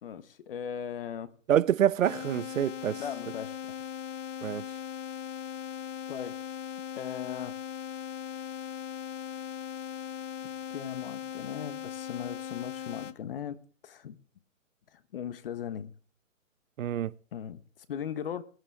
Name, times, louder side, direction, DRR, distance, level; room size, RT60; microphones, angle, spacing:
voice 1, 0.0-1.3 3.0-3.6 6.1-6.4 7.0-7.5 10.7-14.2 14.9-15.9 17.3-18.4, left 8 dB, 45° left, 1.2 m, -38 dB
voice 2, 1.5-3.0 4.4-4.7 16.8-17.1, right 10 dB, 75° right, 0.7 m, -26 dB
sound 1, 2.0-13.1, left 9 dB, 65° left, 1.2 m, -39 dB
22.5 x 9.8 x 3.4 m
hypercardioid pair, 160°, 40 cm